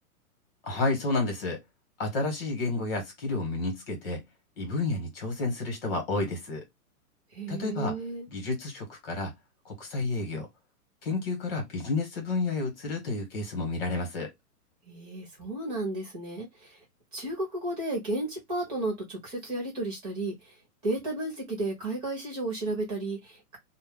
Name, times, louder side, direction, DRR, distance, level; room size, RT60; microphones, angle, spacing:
voice 1, 0.6-1.6 2.0-4.2 4.6-6.6 7.5-7.9 8.3-9.3 9.6-10.5 11.0-14.3, left 3 dB, 40° left, 1.4 m, -30 dB
voice 2, 7.3-8.3 14.8-16.8 17.1-20.6 20.8-23.6, right 2 dB, 25° right, 1.2 m, -33 dB
2.7 x 2.3 x 3.5 m
hypercardioid pair, 170°, 46 cm